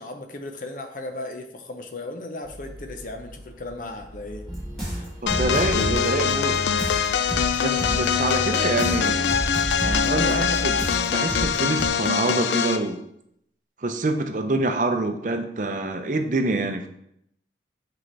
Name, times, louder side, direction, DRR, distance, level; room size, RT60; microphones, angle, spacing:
voice 1, 0.0-4.5 4.9-5.1 6.5-6.7 10.0-10.6, left 2 dB, 50° left, 5 dB, 0.7 m, -35 dB
sound 1, 2.4-8.9, equal, 25° right, 1.5 m, -43 dB
sound 2, 4.5-11.9, equal, 5° left, 2.1 m, -31 dB
voice 2, 5.2-6.6 7.6-9.4 9.8-10.8 11.1-13.0 13.8-16.9, right 2 dB, 45° right, 6 dB, 0.6 m, -26 dB
sound 3, 5.3-12.9, left 7 dB, 80° left, 0.3 m, -24 dB
6.2 x 4.6 x 3.3 m, 0.73 s
head